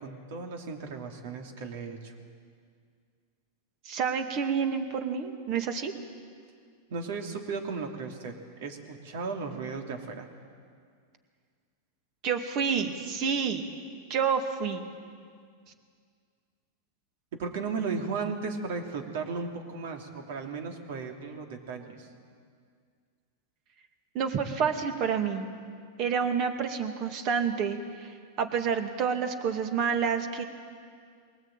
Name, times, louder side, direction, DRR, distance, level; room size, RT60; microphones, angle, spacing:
voice 1, 0.0-2.1 6.9-10.3 17.4-22.1, right 4 dB, 70° right, 3 dB, 3.0 m, -35 dB
voice 2, 3.8-5.9 12.2-13.7 14.1-14.9 24.1-25.5 26.0-30.4, right 6 dB, 45° right, 6 dB, 2.3 m, -29 dB
22.0 x 19.0 x 9.1 m, 2.1 s
hypercardioid pair, 125°, 0 cm